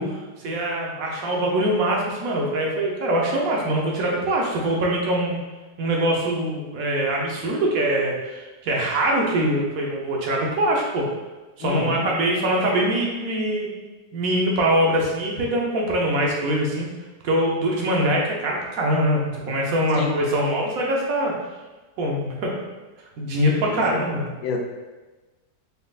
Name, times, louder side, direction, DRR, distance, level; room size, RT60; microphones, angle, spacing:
voice 1, 0.0-5.4 5.8-11.1 11.6-13.7 14.1-16.9 17.2-21.3 22.0-22.5 23.2-24.3, right 1 dB, 65° right, -2 dB, 1.2 m, -23 dB
voice 2, 11.6-12.0 19.9-20.1 23.7-24.0 24.4-24.6, left 5 dB, 70° left, 2 dB, 0.9 m, -28 dB
4.2 x 3.7 x 2.4 m, 1.2 s
omnidirectional pair, 1.8 m